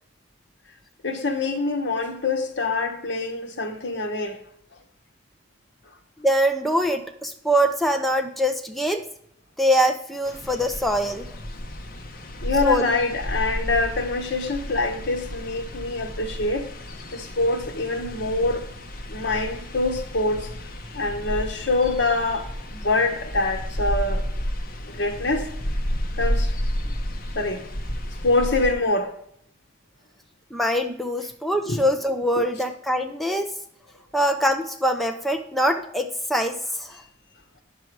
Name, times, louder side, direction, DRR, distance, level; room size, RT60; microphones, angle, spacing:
voice 1, 1.0-4.4 12.4-16.7 17.1-18.7 19.1-20.6 20.9-24.2 24.8-25.5 26.2-26.6 27.3-27.7 28.2-29.1 31.7-31.8 32.4-32.5, left 2 dB, 65° left, 1.3 m, -25 dB
voice 2, 6.2-9.0 9.6-11.3 12.6-12.9 30.5-33.5 34.1-37.0, equal, ahead, 0.6 m, -23 dB
sound 1, 10.2-28.7, equal, 50° left, 1.0 m, -31 dB
9.3 x 6.8 x 4.7 m
head